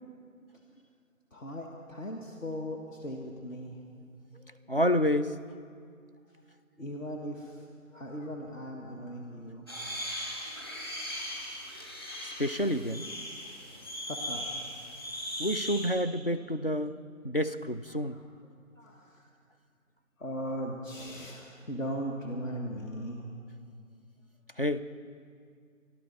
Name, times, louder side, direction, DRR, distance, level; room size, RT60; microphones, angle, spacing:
voice 1, 1.3-3.8 4.3-4.6 6.8-9.6 10.0-10.1 12.1-12.4 13.0-13.1 13.7-14.7 17.9-18.2 18.8-19.3 20.2-23.3, equal, 65° left, 0 dB, 1.8 m, -39 dB
voice 2, 4.7-5.4 12.4-13.1 15.4-16.9 17.2-18.2 24.6-24.8, equal, 45° left, 9 dB, 0.4 m, -28 dB
sound 1, 9.7-15.9, left 1 dB, 15° left, 1.5 m, -38 dB
27.5 x 12.0 x 4.1 m, 2.2 s
figure-of-eight pair, 175°, 43 cm